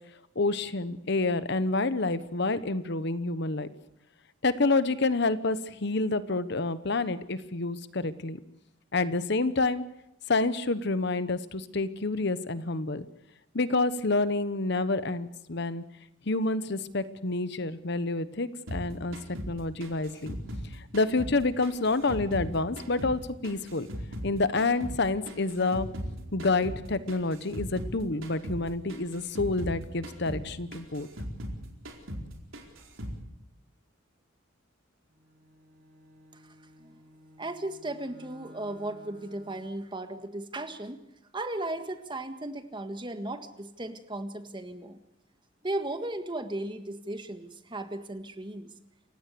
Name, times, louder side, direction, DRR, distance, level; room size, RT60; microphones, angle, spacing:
voice 1, 0.3-3.7 4.4-8.4 8.9-9.8 10.3-13.0 13.5-15.8 16.3-19.2 19.5-20.3 20.7-23.9 24.2-25.9 26.3-31.1, left 3 dB, 60° left, 14 dB, 1.1 m, -28 dB
sound 1, 18.7-21.4 21.6-24.3 24.6-28.0 28.2-28.6 28.9-31.6 31.8-32.3 32.5-33.2, equal, 90° right, 4.4 m, -38 dB
Bowed string instrument, 35.1-39.8, equal, 50° right, 6.2 m, -55 dB
voice 2, 36.3-37.0 37.4-41.1 41.3-45.0 45.6-48.7, right 1 dB, 25° right, 8 dB, 1.7 m, -36 dB
29.0 x 16.0 x 6.9 m, 0.84 s
head